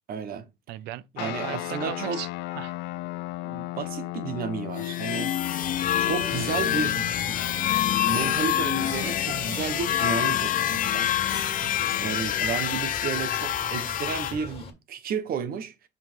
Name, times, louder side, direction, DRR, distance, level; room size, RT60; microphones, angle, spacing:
voice 1, 0.1-0.5 1.1-2.2 3.4-5.4 6.0-7.4 8.1-11.1 12.0-15.7, right 6 dB, 60° right, 1.4 m, -32 dB
voice 2, 0.7-2.7 11.6-12.0, right 15 dB, 90° right, 0.6 m, -38 dB
sound 1, 1.2-11.8, left 18 dB, 85° left, 0.4 m, -37 dB
sound 2, 4.7-14.3, left 11 dB, 55° left, 0.8 m, -26 dB
Bird, 5.6-14.7, left 4 dB, 35° left, 2.3 m, -40 dB
5.7 x 5.6 x 4.7 m
cardioid pair, 110°, 17 cm